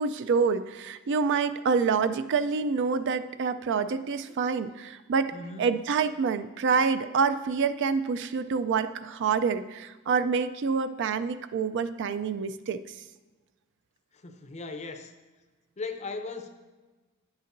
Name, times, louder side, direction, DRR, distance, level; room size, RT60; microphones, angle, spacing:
voice 1, 0.0-12.8, right 5 dB, 60° right, 12 dB, 0.4 m, -27 dB
voice 2, 5.3-5.7 14.2-15.1 15.8-16.5, left 3 dB, 35° left, 7 dB, 0.5 m, -37 dB
9.7 x 8.0 x 2.6 m, 1.3 s
head